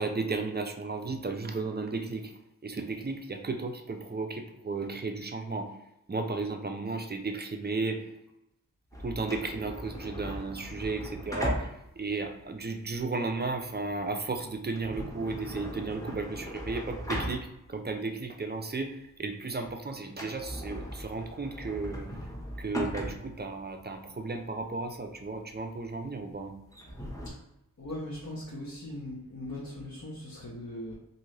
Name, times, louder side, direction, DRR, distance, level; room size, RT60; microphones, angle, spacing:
voice 1, 0.0-2.3 2.6-5.7 6.1-8.0 9.0-22.1 22.6-26.5, right 3 dB, 30° right, 5 dB, 0.4 m, -34 dB
sound 1, 8.9-17.9 18.3-18.4 19.0-19.3 19.6-19.7 20.0-27.3, equal, 10° left, 0.9 m, -39 dB
voice 2, 27.8-30.9, left 1 dB, 55° left, -5 dB, 0.8 m, -39 dB
2.6 x 2.5 x 3.2 m, 0.84 s
wide cardioid pair, 45°, 35 cm